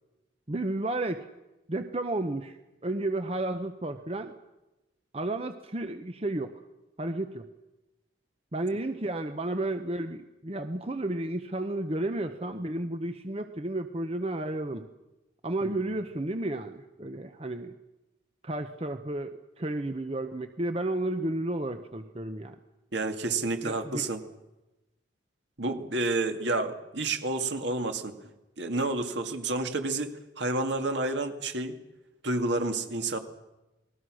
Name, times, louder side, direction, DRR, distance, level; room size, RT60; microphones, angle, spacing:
voice 1, 0.5-1.3 1.7-2.6 2.8-4.3 5.1-6.5 7.0-7.5 8.5-14.8 15.4-17.7 18.4-22.6 23.6-24.1, right 1 dB, 30° right, 8 dB, 0.9 m, -32 dB
voice 2, 22.9-24.2 25.6-28.1 28.6-31.8 32.2-33.2, right 2 dB, 65° right, 6 dB, 2.2 m, -30 dB
29.0 x 20.5 x 6.4 m, 1.0 s
head